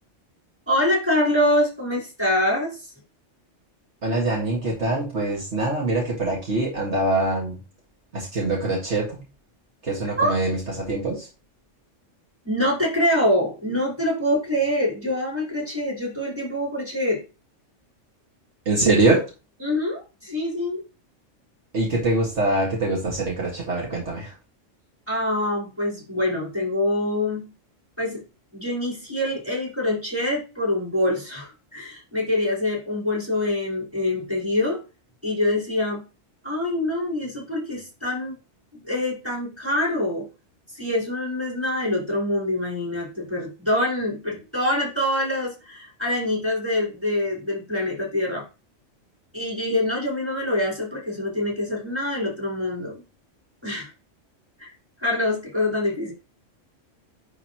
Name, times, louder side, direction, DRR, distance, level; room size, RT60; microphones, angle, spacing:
voice 1, 0.7-2.9 10.2-10.3 12.4-17.2 19.6-20.8 25.1-27.4 28.0-28.2 28.5-34.8 35.2-36.0 36.4-38.4 38.7-40.3 40.7-48.5 49.3-53.0 53.6-53.9 54.6-54.7 55.0-56.1, left 1 dB, 10° right, -5 dB, 4.2 m, -25 dB
voice 2, 4.0-7.6 8.1-9.2 9.8-11.3 18.7-19.2 21.7-24.3, right 2 dB, 65° right, -2 dB, 2.1 m, -23 dB
10.0 x 4.0 x 2.9 m, 0.31 s
omnidirectional pair, 1.3 m